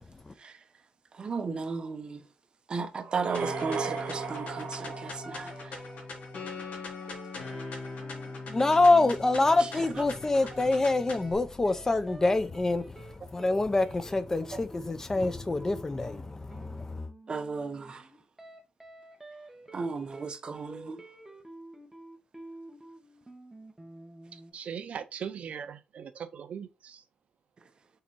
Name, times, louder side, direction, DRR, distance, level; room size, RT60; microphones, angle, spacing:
voice 1, 1.1-2.2 2.7-5.8 9.6-10.0 14.5-14.6 17.3-18.1 19.7-21.0, right 4 dB, 35° right, 1.0 m, -35 dB
sound 1, 3.0-6.0, right 6 dB, 85° right, 1.1 m, -36 dB
sound 2, 3.3-11.3, left 3 dB, 80° left, 3.4 m, -40 dB
sound 3, 5.2-10.8 11.2-11.4 11.7-24.5, right 1 dB, 10° right, 1.2 m, -49 dB
voice 2, 8.5-12.8 13.3-17.1, left 2 dB, 20° left, 0.5 m, -26 dB
voice 3, 24.3-27.0, right 7 dB, 60° right, 0.6 m, -40 dB
6.7 x 4.2 x 4.5 m
wide cardioid pair, 165°, 3 cm